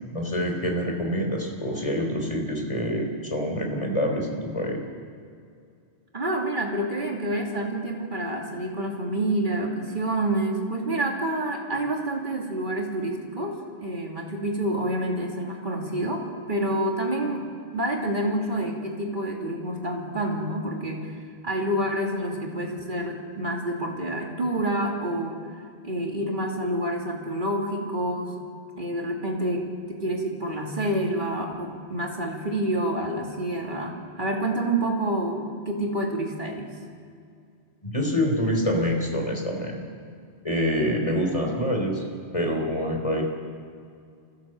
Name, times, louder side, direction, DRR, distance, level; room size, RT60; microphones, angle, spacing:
voice 1, 0.0-4.8 37.8-39.8 40.4-42.0 42.3-43.2, equal, 30° left, 1 dB, 3.5 m, -26 dB
voice 2, 6.1-21.2 21.4-28.4 28.8-36.7, right 1 dB, 45° right, 0 dB, 2.9 m, -28 dB
25.0 x 15.5 x 7.7 m, 2.4 s
omnidirectional pair, 1.2 m